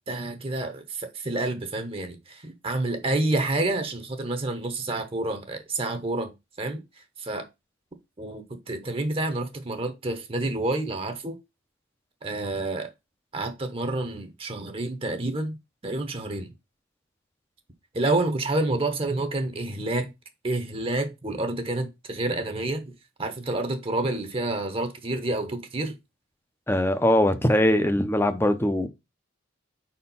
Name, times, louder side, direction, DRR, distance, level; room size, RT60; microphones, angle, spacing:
voice 1, 0.1-7.5 8.2-11.4 12.2-12.9 13.3-15.6 15.8-16.5 17.9-20.1 20.4-22.9 23.2-26.0, right 2 dB, 25° right, 0.9 m, -29 dB
voice 2, 26.7-28.9, left 1 dB, 10° left, 0.6 m, -21 dB
5.0 x 4.4 x 5.4 m
head